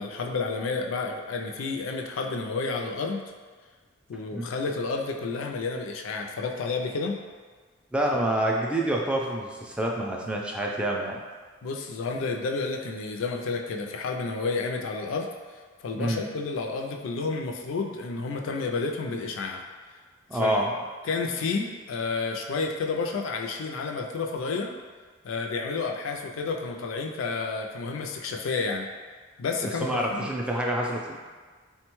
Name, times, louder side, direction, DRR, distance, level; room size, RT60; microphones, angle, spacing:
voice 1, 0.0-3.2 4.1-7.2 11.6-15.3 15.8-19.6 20.3-20.7 21.1-24.7 25.2-28.9 29.4-30.3, left 4 dB, 85° left, 2 dB, 0.4 m, -30 dB
voice 2, 7.9-11.2 15.9-16.3 20.3-20.7 29.6-31.2, right 1 dB, 5° right, -1 dB, 0.3 m, -27 dB
3.6 x 2.2 x 3.0 m, 1.5 s
head